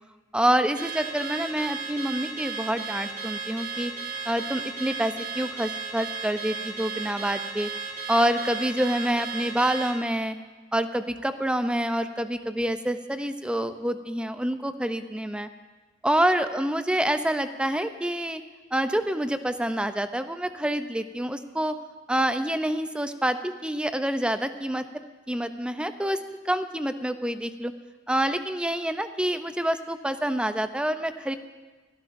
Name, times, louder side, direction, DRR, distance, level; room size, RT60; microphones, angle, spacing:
voice 1, 0.3-3.9 4.3-7.7 8.1-10.4 10.7-15.5 16.0-18.4 18.7-21.7 22.1-24.8 25.3-26.2 26.4-27.7 28.1-31.4, right 1 dB, 5° right, 10 dB, 0.4 m, -27 dB
Car / Alarm, 0.8-10.0, right 4 dB, 50° right, 1.6 m, -35 dB
23.0 x 12.0 x 2.6 m, 1.3 s
head